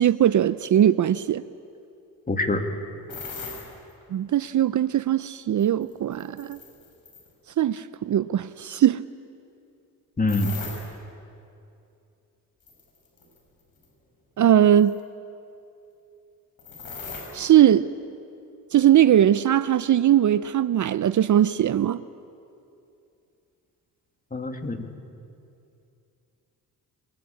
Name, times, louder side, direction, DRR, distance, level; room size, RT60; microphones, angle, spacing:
voice 1, 0.0-1.4 4.1-6.6 7.6-9.0 14.4-15.0 17.3-17.9 18.7-22.0, right 11 dB, 50° right, 0.6 m, -20 dB
voice 2, 2.3-2.6 10.2-10.5 24.3-24.9, left 2 dB, 20° left, 2.3 m, -25 dB
sound 1, 3.1-3.7 5.6-7.3 10.3-10.9 12.7-13.4 13.8-13.9 14.7-15.0 16.6-17.4, left 4 dB, 60° left, 6.6 m, -38 dB
22.5 x 21.5 x 8.5 m
cardioid pair, 75°, 38 cm